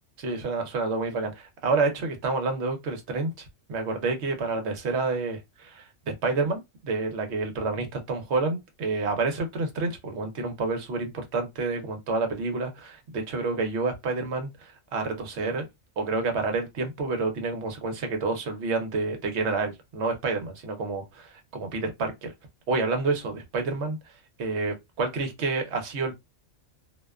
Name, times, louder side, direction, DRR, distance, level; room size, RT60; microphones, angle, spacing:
voice 1, 0.2-15.6 16.0-22.3 22.7-24.0 24.4-26.1, right 3 dB, 65° right, 1.0 m, -29 dB
2.5 x 2.2 x 2.3 m
omnidirectional pair, 1.3 m